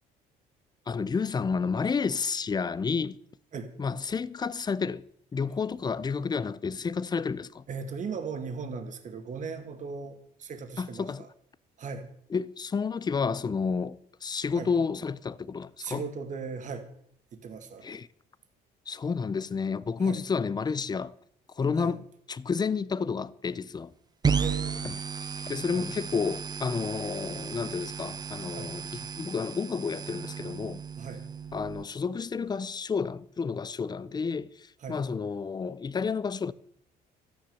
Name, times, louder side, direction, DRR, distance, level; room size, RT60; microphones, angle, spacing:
voice 1, 0.9-3.2 3.8-5.1 5.3-7.6 10.8-11.2 12.3-16.0 17.8-18.1 18.9-21.1 21.6-22.0 22.3-23.9 24.8-24.9 25.5-30.8 31.5-36.5, left 5 dB, 25° left, 0.6 m, -30 dB
voice 2, 7.7-11.3 11.8-12.1 14.5-14.7 15.8-16.9 17.3-17.9 20.0-20.2 21.8-21.9 24.4-24.8 25.7-25.9 28.5-28.7 31.0-31.2 34.8-35.0, right 5 dB, 45° right, 2.2 m, -38 dB
sound 1, 24.2-31.8, right 6 dB, 25° right, 0.7 m, -34 dB
13.5 x 9.9 x 7.1 m
cardioid pair, 110°, 17 cm